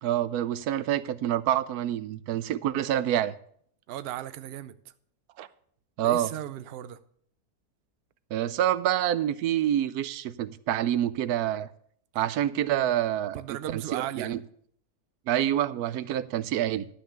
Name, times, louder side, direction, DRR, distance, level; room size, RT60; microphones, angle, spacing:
voice 1, 0.0-3.3 5.4-5.5 6.0-6.3 8.3-11.7 12.1-14.4 15.3-16.9, right 11 dB, 80° right, 1.1 m, -27 dB
voice 2, 3.9-4.8 6.0-7.0 13.3-14.4, right 11 dB, 60° right, 0.6 m, -36 dB
12.0 x 5.7 x 6.4 m
omnidirectional pair, 1.7 m